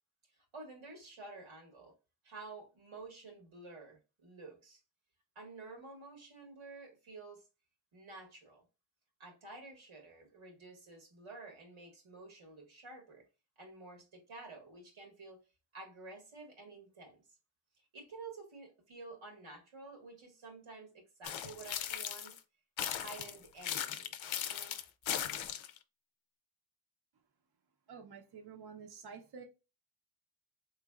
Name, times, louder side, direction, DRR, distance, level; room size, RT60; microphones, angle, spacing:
voice 1, 0.4-1.9 2.2-4.8 5.3-7.4 7.9-8.6 9.2-13.2 13.6-15.4 15.7-17.2 17.9-22.4 22.9-24.1 24.4-24.7, right 3 dB, 90° right, 1.6 m, -51 dB
sound 1, 21.2-22.4 22.8-25.8, left 10 dB, 70° left, 0.6 m, -38 dB
voice 2, 27.9-29.4, right 6 dB, 50° right, 0.8 m, -50 dB
3.6 x 3.1 x 2.3 m
cardioid pair, 60°, 48 cm